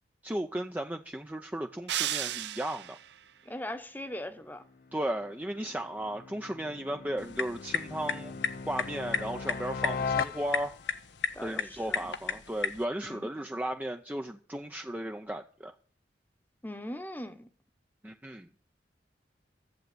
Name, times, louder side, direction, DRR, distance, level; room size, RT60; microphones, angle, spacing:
voice 1, 0.2-3.0 4.9-8.4 8.7-10.7 11.4-15.7 18.0-18.5, right 1 dB, 10° right, 0.6 m, -35 dB
sound 1, 1.9-3.1, right 12 dB, 70° right, 0.6 m, -33 dB
voice 2, 3.4-4.6 11.3-12.1 13.0-13.3 16.6-17.5, left 1 dB, 10° left, 1.0 m, -40 dB
sound 2, 4.6-11.0, left 5 dB, 55° left, 0.5 m, -39 dB
sound 3, 7.2-12.8, left 6 dB, 85° left, 1.1 m, -35 dB
12.0 x 7.9 x 7.9 m
head